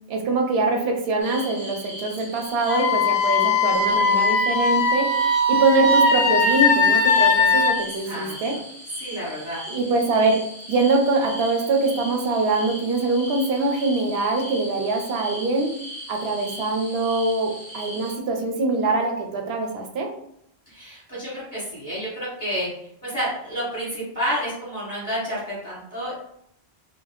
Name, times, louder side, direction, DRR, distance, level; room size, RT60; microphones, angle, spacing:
voice 1, 0.1-5.1 5.5-8.5 9.7-10.4 10.7-15.7 16.1-20.1, right 3 dB, 75° right, 2 dB, 0.8 m, -23 dB
sound 1, 1.2-18.1, equal, 45° right, 0.8 m, -39 dB
Wind instrument woodwind instrument, 2.7-7.7, left 3 dB, 65° left, 0.7 m, -19 dB
voice 2, 9.0-9.6 20.7-22.7 23.0-26.1, equal, 10° left, -11 dB, 1.4 m, -29 dB
3.1 x 2.1 x 2.3 m, 0.74 s
omnidirectional pair, 1.1 m